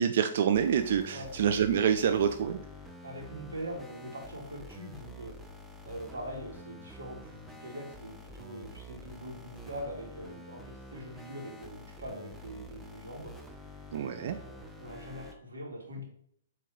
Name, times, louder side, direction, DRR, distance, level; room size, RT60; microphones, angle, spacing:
voice 1, 0.0-2.6 13.9-14.4, right 8 dB, 60° right, 8 dB, 0.3 m, -27 dB
sound 1, 0.5-15.4, left 1 dB, ahead, 0.5 m, -48 dB
voice 2, 3.0-5.3 5.8-10.6 10.9-13.3 14.1-16.0, equal, 85° right, -1 dB, 1.6 m, -42 dB
4.6 x 2.9 x 3.7 m, 0.68 s
hypercardioid pair, 130°, 0 cm